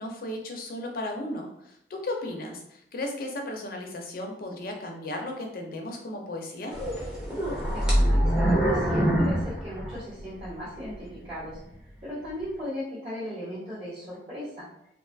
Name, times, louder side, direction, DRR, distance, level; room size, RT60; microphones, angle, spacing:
voice 1, 0.0-6.8, left 1 dB, 55° left, 2 dB, 0.5 m, -35 dB
sound 1, 6.7-10.5 10.9-11.0 11.6-11.8, right 1 dB, 5° right, 0.6 m, -24 dB
voice 2, 7.7-11.6 12.0-14.7, left 1 dB, 35° right, -10 dB, 1.0 m, -37 dB
2.5 x 2.3 x 2.5 m, 0.77 s
head